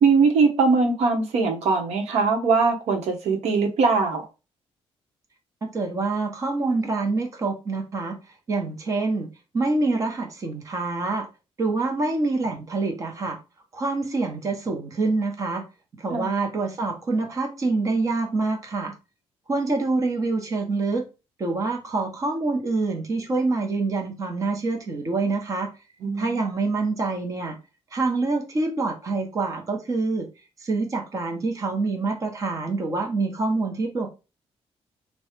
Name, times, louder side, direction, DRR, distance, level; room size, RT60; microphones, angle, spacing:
voice 1, 0.0-4.3 16.1-16.3 26.0-26.2, right 4 dB, 90° right, 1.1 m, -21 dB
voice 2, 5.6-8.2 8.5-9.3 9.5-11.3 11.6-13.4 13.7-15.6 16.0-18.9 19.5-21.1 21.4-25.7 26.2-27.6 27.9-30.3 30.6-34.1, right 3 dB, 30° right, 0.9 m, -26 dB
3.6 x 2.3 x 4.3 m
cardioid pair, 170°, 11 cm